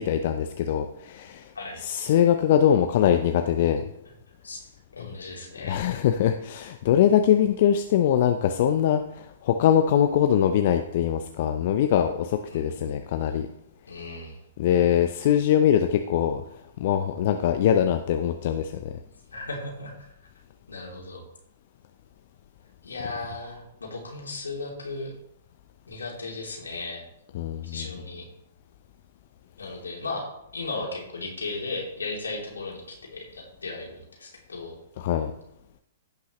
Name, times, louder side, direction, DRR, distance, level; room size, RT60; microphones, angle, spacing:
voice 1, 0.0-1.5 1.8-3.8 5.7-13.5 14.6-16.4 16.8-18.9 27.3-27.8 35.0-35.3, left 9 dB, 50° left, 6 dB, 0.6 m, -22 dB
voice 2, 4.4-5.8 12.5-12.8 13.9-14.4 19.3-19.9 20.7-21.2 22.8-25.1 25.9-27.0 27.6-28.3 29.6-30.3 30.5-34.8, left 3 dB, 80° left, -1 dB, 2.9 m, -36 dB
16.5 x 5.7 x 3.1 m, 0.83 s
figure-of-eight pair, 115°, 0 cm